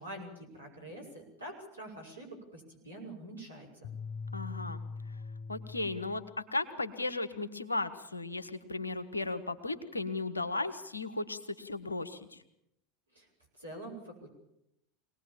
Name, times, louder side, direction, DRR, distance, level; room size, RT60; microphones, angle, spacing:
voice 1, 0.0-3.9 13.1-13.3 13.6-14.3, right 1 dB, 85° right, 0 dB, 6.2 m, -46 dB
sound 1, 3.8-6.3, left 4 dB, 55° left, 1.1 m, -42 dB
voice 2, 4.3-4.8 5.1-5.2 5.5-12.4, left 2 dB, 85° left, 11 dB, 1.4 m, -36 dB
24.0 x 19.0 x 7.3 m, 0.79 s
figure-of-eight pair, 80°, 0 cm